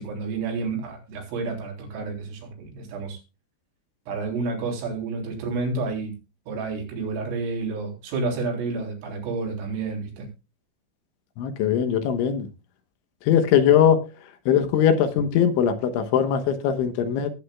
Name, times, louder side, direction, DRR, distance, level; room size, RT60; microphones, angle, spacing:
voice 1, 0.0-3.2 4.1-6.1 6.5-10.3, right 4 dB, 85° right, 6.3 m, -30 dB
voice 2, 11.4-12.5 13.3-14.0 14.5-17.3, left 8 dB, 75° left, 3.4 m, -20 dB
19.5 x 8.6 x 2.3 m
omnidirectional pair, 5.7 m